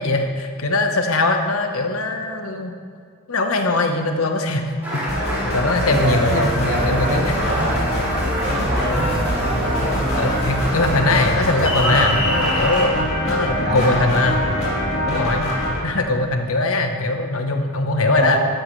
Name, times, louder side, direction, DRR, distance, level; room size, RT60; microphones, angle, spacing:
voice 1, 0.0-2.7 3.3-5.3 5.5-7.4 10.2-14.4 15.1-18.4, left 2 dB, 80° left, 5 dB, 1.1 m, -21 dB
Applause, 4.8-12.8, equal, 10° right, 2.8 m, -27 dB
sound 1, 5.0-15.8, equal, 45° left, 3.5 m, -24 dB
voice 2, 5.8-7.9 8.4-10.2 13.6-14.5 18.2-18.4, right 1 dB, 55° right, -3 dB, 2.6 m, -25 dB
14.5 x 11.5 x 3.3 m, 2.2 s
head